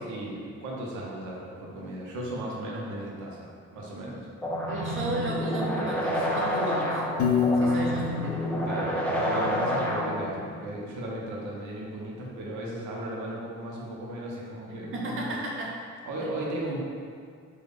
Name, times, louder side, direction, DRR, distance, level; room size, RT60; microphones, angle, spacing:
voice 1, 0.0-4.3 7.6-7.8 8.7-15.3 16.0-16.8, right 1 dB, 75° right, -3 dB, 0.7 m, -36 dB
sound 1, 4.4-10.4, equal, 5° left, 0.4 m, -29 dB
voice 2, 4.7-7.0 7.5-8.3 14.9-15.7, right 2 dB, 45° right, -3 dB, 0.8 m, -34 dB
Piano, 7.2-9.4, left 4 dB, 70° left, 0.5 m, -27 dB
3.4 x 2.1 x 3.4 m, 2.2 s
cardioid pair, 90°, 30 cm